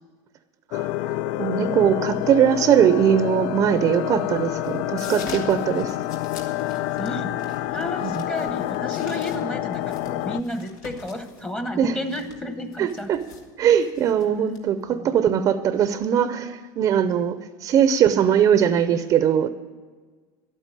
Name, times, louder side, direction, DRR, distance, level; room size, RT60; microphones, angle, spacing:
sound 1, 0.7-10.4, left 14 dB, 50° left, 0.4 m, -28 dB
voice 1, 0.7-6.0 8.0-8.3 11.8-12.0 12.8-13.2 13.6-19.5, right 9 dB, 35° right, 11 dB, 0.6 m, -21 dB
sound 2, 4.6-15.0, left 5 dB, 85° left, 2.6 m, -45 dB
voice 2, 7.0-7.4 7.7-13.1 14.9-15.1 18.7-18.8, left 1 dB, 15° left, 7 dB, 1.0 m, -32 dB
12.0 x 9.0 x 9.0 m, 1.4 s
supercardioid pair, 140°, 10 cm